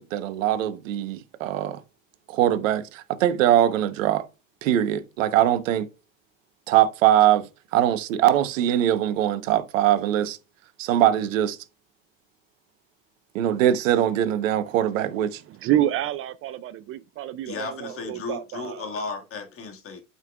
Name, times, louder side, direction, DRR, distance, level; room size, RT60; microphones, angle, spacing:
voice 1, 0.0-1.8 2.3-4.2 4.6-5.9 6.7-7.5 7.7-10.4 10.8-11.6 13.3-15.4, right 11 dB, 70° right, 1.1 m, -22 dB
voice 2, 15.5-18.9, right 12 dB, 35° right, 0.4 m, -28 dB
voice 3, 17.5-20.0, left 4 dB, 35° left, 2.0 m, -34 dB
11.5 x 5.5 x 2.4 m
hypercardioid pair, 90°, 40 cm